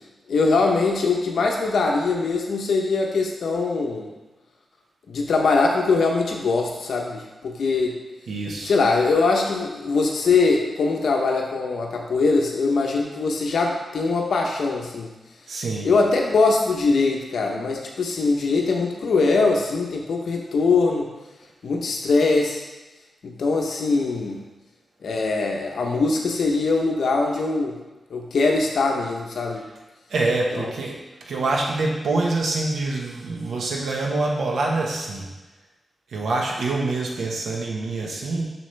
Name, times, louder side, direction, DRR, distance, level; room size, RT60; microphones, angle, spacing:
voice 1, 0.3-4.1 5.1-8.0 8.6-15.1 15.8-21.1 21.6-22.6 23.2-24.4 25.0-27.7 28.1-29.7 30.5-30.7, left 3 dB, 75° left, 1 dB, 0.8 m, -22 dB
voice 2, 8.3-8.7 15.5-15.9 30.1-31.0 31.3-35.3 36.1-38.4, right 3 dB, 80° right, -1 dB, 1.3 m, -25 dB
7.2 x 6.2 x 3.3 m, 1.1 s
wide cardioid pair, 110°, 0 cm